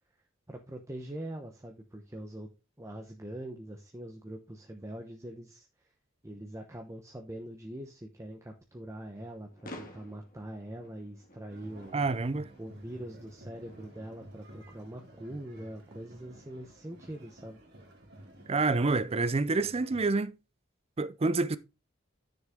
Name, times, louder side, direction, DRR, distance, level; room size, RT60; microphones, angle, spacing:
voice 1, 0.5-2.5 2.8-5.7 6.2-12.0 12.6-17.6, right 1 dB, 15° right, 1.0 m, -43 dB
sound 1, 9.2-14.2, left 1 dB, 45° left, 1.9 m, -52 dB
sound 2, 11.5-20.1, right 1 dB, 55° right, 2.9 m, -52 dB
voice 2, 11.9-12.5 18.5-20.3 21.0-21.6, right 3 dB, 30° right, 0.5 m, -28 dB
10.5 x 6.4 x 3.7 m
head